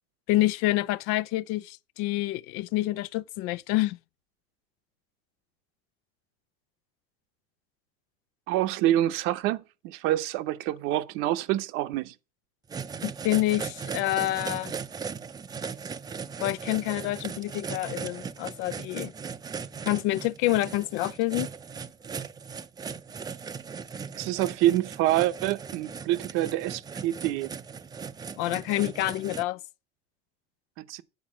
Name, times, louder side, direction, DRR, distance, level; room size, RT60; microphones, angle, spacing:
voice 1, 0.3-4.0 13.0-14.7 16.4-19.1 19.8-21.5 28.4-29.6, left 17 dB, 85° left, 0.5 m, -27 dB
voice 2, 8.5-12.1 24.1-27.5 30.8-31.0, right 14 dB, 75° right, 0.8 m, -27 dB
sound 1, 12.7-29.4, right 6 dB, 20° right, 0.5 m, -38 dB
8.4 x 4.7 x 7.4 m
cardioid pair, 140°, 21 cm